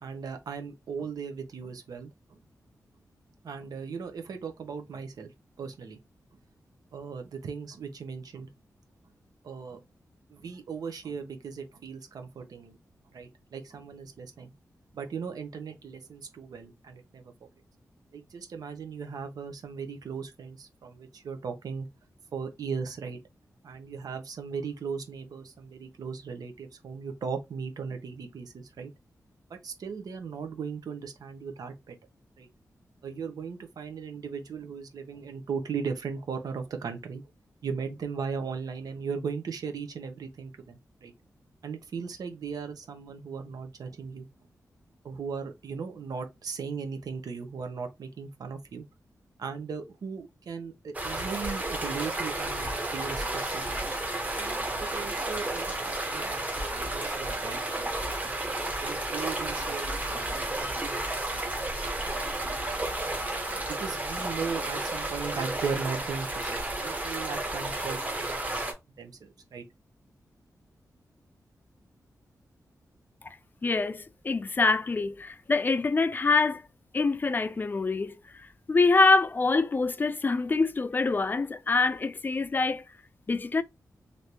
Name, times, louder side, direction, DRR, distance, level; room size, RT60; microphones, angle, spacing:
voice 1, 0.0-2.1 3.4-5.3 5.6-6.0 6.9-8.5 9.4-9.8 10.3-12.8 13.1-14.5 14.9-17.3 18.1-21.9 22.3-23.2 23.6-28.9 29.5-32.0 32.4-32.5 33.0-37.2 37.6-41.1 41.6-44.3 45.0-48.8 49.4-53.9 54.4-57.6 58.2-61.6 61.9-62.5 63.7-69.6, right 5 dB, 85° right, 0.7 m, -38 dB
sound 1, 50.9-68.7, right 2 dB, 25° right, 0.9 m, -32 dB
voice 2, 73.6-76.6 76.9-82.8 83.3-83.6, left 3 dB, 30° left, 0.3 m, -25 dB
3.3 x 2.6 x 2.9 m
wide cardioid pair, 105°, 6 cm